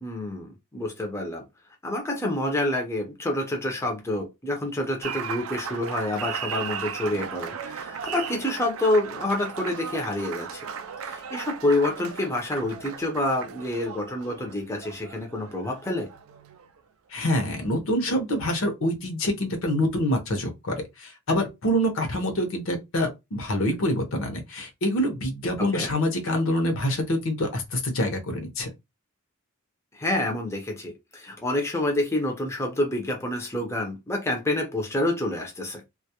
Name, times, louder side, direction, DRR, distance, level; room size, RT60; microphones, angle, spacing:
voice 1, 0.0-1.4 1.8-10.7 11.0-16.1 25.6-25.9 29.9-35.8, left 1 dB, 10° left, 0.5 m, -28 dB
Applause, 5.0-16.8, right 7 dB, 65° right, 0.3 m, -36 dB
voice 2, 17.1-28.7, equal, 65° left, 0.7 m, -26 dB
2.2 x 2.0 x 2.7 m
head